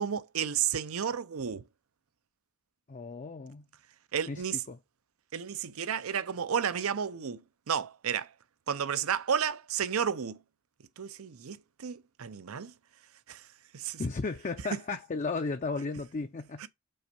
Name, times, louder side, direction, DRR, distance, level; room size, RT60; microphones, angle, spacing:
voice 1, 0.0-1.6 4.1-4.6 5.3-7.4 7.7-8.3 8.7-10.4 11.0-12.7 13.3-13.4 13.7-14.0 14.7-14.8 16.6-16.7, right 7 dB, 80° right, 0.6 m, -32 dB
voice 2, 2.9-3.6 4.3-4.4 4.7-4.8 14.0-16.7, left 4 dB, 35° left, 0.4 m, -34 dB
5.5 x 4.3 x 5.3 m
head